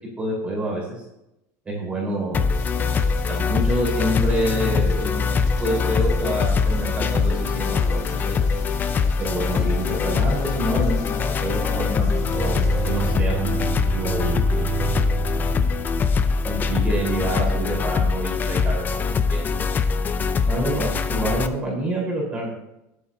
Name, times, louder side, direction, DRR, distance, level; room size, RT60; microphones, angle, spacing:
voice 1, 0.2-0.9 1.6-2.4 3.3-8.4 9.2-13.5 13.8-15.3 16.4-19.4 20.4-22.5, right 1 dB, 15° right, -3 dB, 4.8 m, -28 dB
sound 1, 2.3-21.5, left 5 dB, 25° left, 0.7 m, -23 dB
sound 2, 2.5-13.1, left 4 dB, 50° left, 2.9 m, -40 dB
Bowed string instrument, 11.8-17.0, right 13 dB, 30° right, 0.5 m, -32 dB
22.0 x 8.5 x 2.9 m, 0.86 s
supercardioid pair, 145°, 8 cm